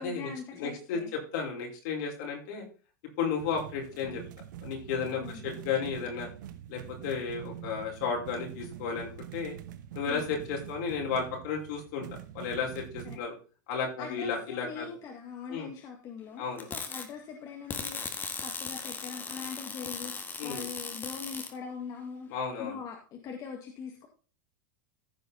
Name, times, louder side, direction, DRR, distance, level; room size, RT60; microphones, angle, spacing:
voice 1, 0.0-1.1 5.2-5.5 10.0-10.3 13.0-13.2 14.0-22.3 22.6-24.1, left 6 dB, 35° left, 2 dB, 1.9 m, -42 dB
voice 2, 0.6-1.0 1.3-2.6 3.2-4.2 4.6-6.3 6.7-9.5 9.9-12.1 12.3-13.3 13.7-14.8 15.5-15.7 16.4-16.7 20.4-20.6 22.3-22.8, left 6 dB, 65° left, 0 dB, 4.8 m, -33 dB
sound 1, 3.4-13.2, right 11 dB, 80° right, 1.1 m, -44 dB
sound 2, 16.6-17.0 17.7-21.5, left 5 dB, 20° left, 1.5 m, -38 dB
15.0 x 5.0 x 4.2 m, 0.36 s
supercardioid pair, 135°, 10 cm